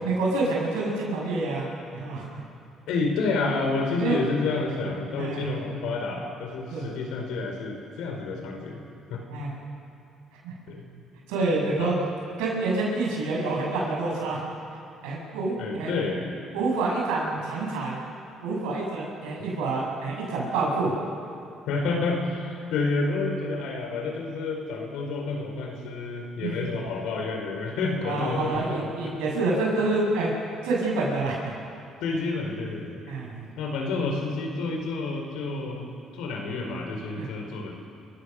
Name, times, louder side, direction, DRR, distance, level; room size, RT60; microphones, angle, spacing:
voice 1, 0.0-1.7 1.9-2.3 4.0-4.2 5.2-5.4 6.7-6.9 9.3-9.5 10.4-10.5 11.3-11.9 12.4-14.4 15.0-15.9 16.5-18.0 18.4-20.9 26.4-26.7 28.0-30.3 30.6-31.6 33.1-33.5 37.2-37.3, right 3 dB, 85° right, -2 dB, 7.3 m, -27 dB
voice 2, 2.9-8.8 9.1-9.2 10.7-10.8 11.8-12.0 15.6-16.3 21.7-29.1 32.0-33.0 33.6-35.9 36.1-37.7, left 3 dB, 80° left, 2 dB, 4.8 m, -29 dB
29.0 x 16.0 x 6.8 m, 2.6 s
supercardioid pair, 65°, 0 cm